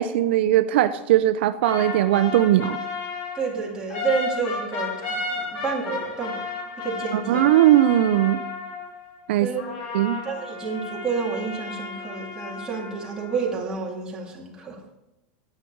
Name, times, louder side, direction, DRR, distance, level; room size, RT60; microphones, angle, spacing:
voice 1, 0.0-2.8 7.1-8.4 9.3-9.5 9.9-10.2, right 13 dB, 75° right, 11 dB, 0.5 m, -19 dB
sound 1, 1.6-9.1 9.6-13.6, left 4 dB, 55° left, 2.1 m, -33 dB
voice 2, 3.3-6.4 6.8-7.4 9.4-9.8 10.2-14.8, right 5 dB, 10° right, -3 dB, 2.1 m, -29 dB
9.9 x 8.4 x 4.6 m, 0.92 s
supercardioid pair, 165°, 6 cm